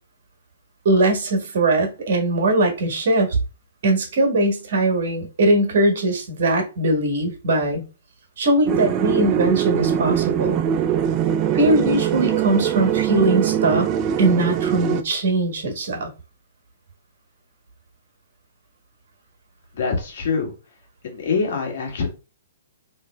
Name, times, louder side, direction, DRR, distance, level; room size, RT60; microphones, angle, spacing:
voice 1, 0.8-3.4 3.8-7.8 8.4-10.6 11.5-13.9 14.2-16.1, right 2 dB, 60° right, 4 dB, 1.6 m, -20 dB
sound 1, 8.7-15.0, right 9 dB, 30° right, 0.4 m, -22 dB
voice 2, 19.7-20.5 21.0-22.1, left 5 dB, 60° left, 1 dB, 1.8 m, -24 dB
3.3 x 3.2 x 3.5 m, 0.31 s
hypercardioid pair, 130°, 0 cm